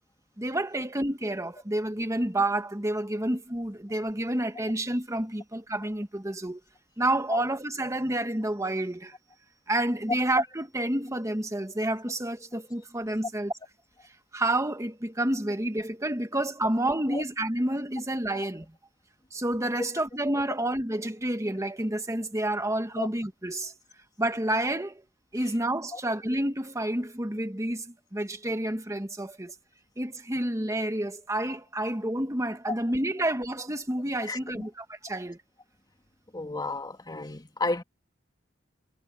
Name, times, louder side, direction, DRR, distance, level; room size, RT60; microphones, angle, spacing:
voice 1, 0.4-6.6 7.0-9.1 9.7-13.5 14.3-18.6 19.3-23.7 24.2-25.0 25.3-29.5 30.0-35.4, right 1 dB, 15° right, 1.6 m, -29 dB
voice 2, 34.2-34.7 36.3-37.8, left 2 dB, 20° left, 2.4 m, -33 dB
head